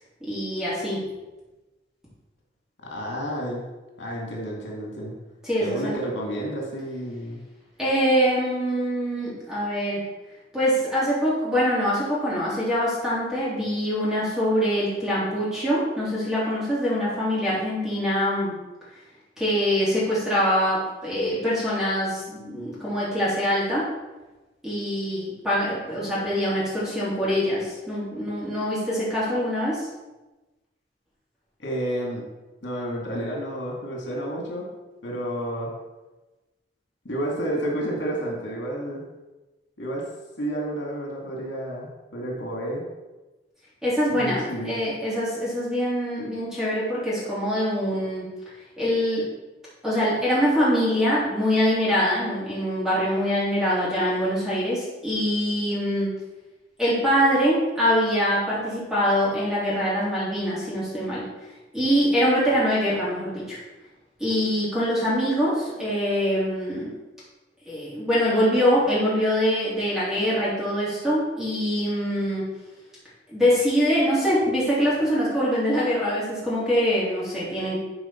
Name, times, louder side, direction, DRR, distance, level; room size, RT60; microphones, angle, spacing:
voice 1, 0.2-1.0 5.4-6.0 7.8-10.0 10.5-18.5 19.4-23.9 24.6-29.9 43.8-48.3 48.8-49.3 49.8-56.2 56.8-61.2 61.7-63.6 64.2-66.9 67.7-72.4 73.3-77.8, equal, 5° right, -9 dB, 3.3 m, -24 dB
voice 2, 2.8-3.6 4.0-5.1 5.6-7.4 31.6-32.2 32.6-34.7 35.0-35.7 37.0-39.0 39.8-40.0 40.4-42.8 44.1-44.7, right 1 dB, 90° left, -1 dB, 2.2 m, -30 dB
11.0 x 4.9 x 4.5 m, 1.1 s
head